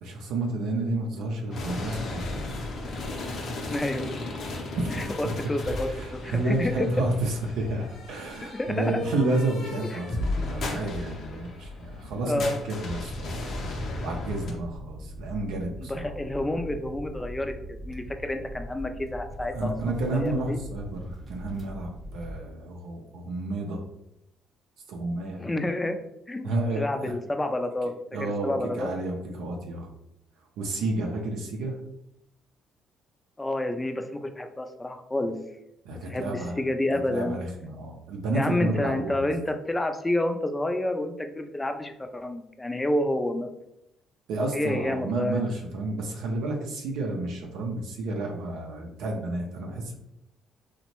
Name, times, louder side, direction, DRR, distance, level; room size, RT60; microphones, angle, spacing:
voice 1, 0.0-2.4 4.7-4.9 5.2-5.3 6.0-10.1 10.4-13.3 14.0-16.1 19.5-23.8 24.9-25.4 26.4-27.1 28.1-29.9 30.6-31.7 35.9-36.6 37.1-39.3 44.3-49.9, right 2 dB, 80° right, 1 dB, 0.4 m, -30 dB
sound 1, 1.5-14.5, left 2 dB, 60° left, 0.6 m, -35 dB
voice 2, 3.7-4.2 4.9-6.9 8.4-9.0 9.9-10.0 12.2-12.6 15.8-20.6 25.4-26.0 26.3-27.9 28.2-28.9 33.4-35.4 36.1-37.4 38.3-43.5 44.5-45.4, left 1 dB, 15° left, 6 dB, 0.4 m, -29 dB
sound 2, 13.1-22.4, equal, 25° right, 0.7 m, -41 dB
2.8 x 2.1 x 2.9 m, 0.82 s
supercardioid pair, 65°, 0 cm